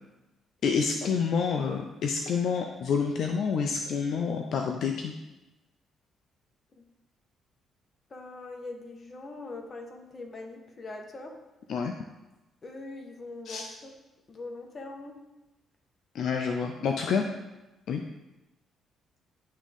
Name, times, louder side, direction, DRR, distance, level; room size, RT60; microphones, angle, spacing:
voice 1, 0.6-5.1 11.7-11.9 13.5-13.7 16.1-17.3 17.9-18.0, left 6 dB, 70° left, 4 dB, 0.5 m, -28 dB
voice 2, 8.1-11.3 12.6-13.9 14.3-15.2 17.1-17.3, left 2 dB, 40° left, 2 dB, 1.3 m, -42 dB
11.0 x 3.7 x 3.6 m, 1.0 s
cardioid pair, 90°, 0 cm